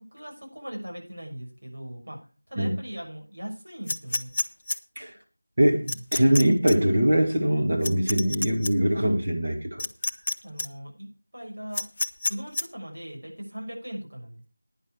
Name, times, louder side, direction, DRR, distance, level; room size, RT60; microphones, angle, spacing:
voice 1, 0.0-2.2 2.5-4.3 10.4-11.1 11.3-11.8 12.3-14.5, equal, 70° right, 1 dB, 6.3 m, -39 dB
sound 1, 3.9-4.8 5.9-6.4 6.7-6.8 7.8-8.7 9.8-10.3 10.6-10.7 11.7-12.6, left 2 dB, 25° left, 0.5 m, -27 dB
voice 2, 5.6-9.6, right 1 dB, 25° right, 0 dB, 1.7 m, -22 dB
11.5 x 9.9 x 4.8 m, 0.35 s
figure-of-eight pair, 180°, 0 cm